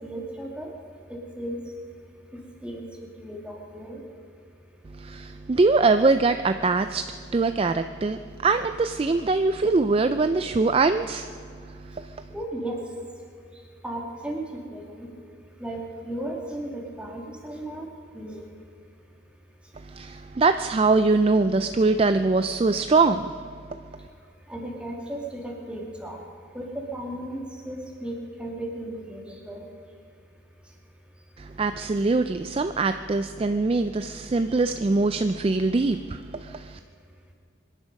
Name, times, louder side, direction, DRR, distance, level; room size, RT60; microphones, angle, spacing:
voice 1, 0.0-0.7 1.1-1.6 2.6-2.8 3.2-4.0 12.3-12.8 13.8-14.4 14.7-15.1 15.6-15.8 16.0-17.9 18.1-18.5 24.5-26.2 26.5-26.6 26.9-29.6, right 1 dB, 5° right, -2 dB, 2.4 m, -35 dB
voice 2, 4.9-12.2 19.8-23.4 31.4-36.8, right 3 dB, 30° right, 10 dB, 0.3 m, -23 dB
24.5 x 11.0 x 5.3 m, 2.4 s
head